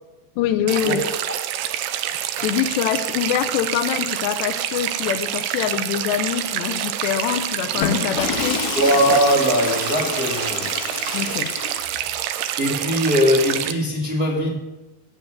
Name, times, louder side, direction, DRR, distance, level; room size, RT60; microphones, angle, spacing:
voice 1, 0.4-1.0 2.4-8.6 11.1-11.5, left 10 dB, 80° left, 8 dB, 2.8 m, -24 dB
sound 1, 0.7-13.7, right 11 dB, 80° right, 2.7 m, -27 dB
Water / Toilet flush, 7.7-12.2, left 6 dB, 60° left, 2.0 m, -29 dB
voice 2, 8.7-10.7 12.3-14.6, equal, 35° right, -1 dB, 1.6 m, -20 dB
17.5 x 9.1 x 6.4 m, 1.0 s
omnidirectional pair, 5.1 m